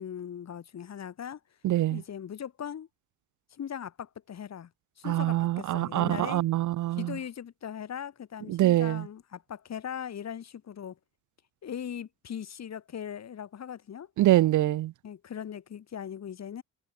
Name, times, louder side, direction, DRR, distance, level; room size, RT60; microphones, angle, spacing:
voice 1, 0.0-1.4 1.9-2.9 3.5-4.7 5.0-6.5 6.9-11.0 11.6-14.1 15.0-16.6, left 8 dB, 45° left, 2.4 m, -39 dB
voice 2, 1.6-2.0 5.1-7.1 8.5-9.0 14.2-14.9, right 15 dB, 55° right, 0.6 m, -24 dB
supercardioid pair, 75°, 37 cm